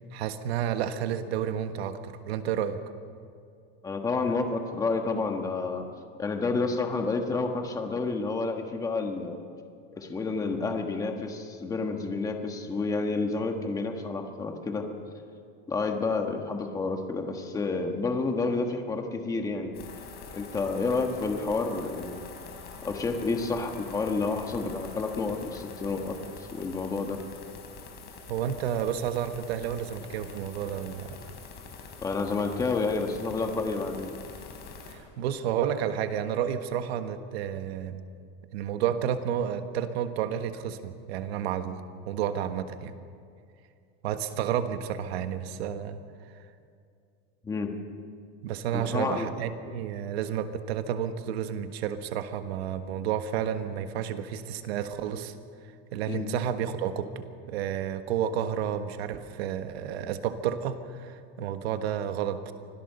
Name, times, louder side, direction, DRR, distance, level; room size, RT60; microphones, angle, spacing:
voice 1, 0.0-2.8 28.3-31.2 34.9-38.0 38.5-42.9 44.0-46.0 48.4-55.3 55.9-62.5, right 9 dB, 80° right, 9 dB, 1.5 m, -31 dB
voice 2, 3.8-5.8 6.2-9.4 10.0-14.9 15.7-19.7 20.3-22.3 22.8-27.2 32.0-34.1 47.4-47.7 48.7-49.3 56.1-56.3, left 3 dB, 10° left, 4 dB, 1.4 m, -30 dB
sound 1, 19.7-34.9, left 5 dB, 30° left, 3.7 m, -45 dB
25.0 x 17.0 x 6.7 m, 2.4 s
supercardioid pair, 175°, 31 cm